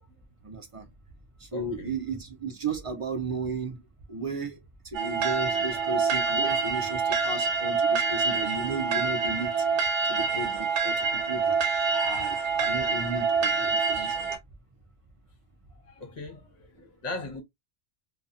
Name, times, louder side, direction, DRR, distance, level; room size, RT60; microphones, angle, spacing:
voice 1, 0.4-0.9 1.4-3.8 4.1-4.6 4.9-9.7 10.1-11.6 12.0-14.3, right 3 dB, 40° right, 0.5 m, -34 dB
voice 2, 1.5-1.9 11.9-12.5 15.9-17.4, left 3 dB, 40° left, 1.0 m, -39 dB
sound 1, 4.9-14.4, right 5 dB, 85° right, 0.9 m, -26 dB
2.7 x 2.3 x 2.3 m
omnidirectional pair, 1.2 m